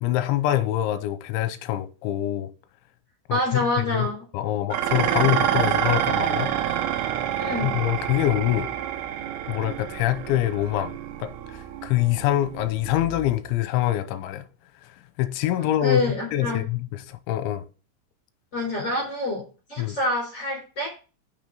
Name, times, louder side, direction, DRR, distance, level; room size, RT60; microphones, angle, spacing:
voice 1, 0.0-2.5 3.3-4.1 4.3-6.5 7.6-8.7 9.5-14.4 15.2-16.0 16.3-17.6 19.8-20.0, left 13 dB, 80° left, 2.9 m, -25 dB
voice 2, 3.3-4.2 7.4-7.8 15.6-16.6 18.5-19.4 19.7-20.9, left 2 dB, 15° left, 3.5 m, -26 dB
Dishes pots and pans, 4.7-13.5, right 10 dB, 80° right, 3.3 m, -28 dB
10.5 x 6.6 x 3.9 m
omnidirectional pair, 5.8 m